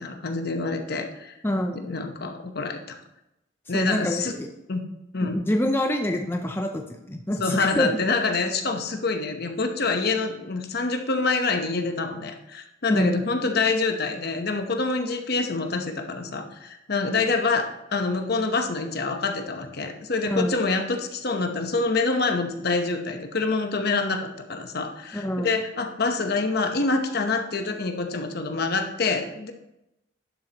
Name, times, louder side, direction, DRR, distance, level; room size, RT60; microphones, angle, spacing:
voice 1, 0.0-1.4 1.8-3.0 3.7-4.3 4.7-4.8 5.1-5.4 7.4-29.5, left 3 dB, 55° left, 5 dB, 0.9 m, -26 dB
voice 2, 1.4-1.9 3.7-4.5 5.2-7.9 12.9-13.2 20.3-20.5 25.1-25.5, left 1 dB, 10° left, 3 dB, 0.5 m, -26 dB
11.0 x 7.4 x 2.9 m, 0.88 s
head